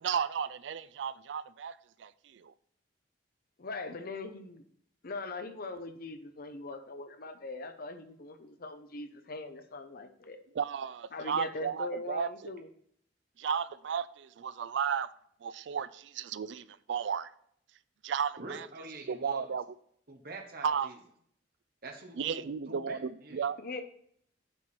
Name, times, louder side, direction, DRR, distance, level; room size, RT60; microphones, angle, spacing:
voice 1, 0.0-2.5 10.5-12.5 13.4-15.1 15.4-17.3 18.0-18.7 19.1-19.8 20.6-20.9 22.2-23.6, right 7 dB, 70° right, 0.4 m, -34 dB
voice 2, 3.6-4.6 5.0-10.4 11.1-12.7 23.6-23.8, left 3 dB, 55° left, 0.8 m, -41 dB
voice 3, 18.4-19.5 20.1-21.0 21.8-23.5, right 2 dB, 55° right, 1.1 m, -45 dB
8.9 x 4.6 x 4.3 m
head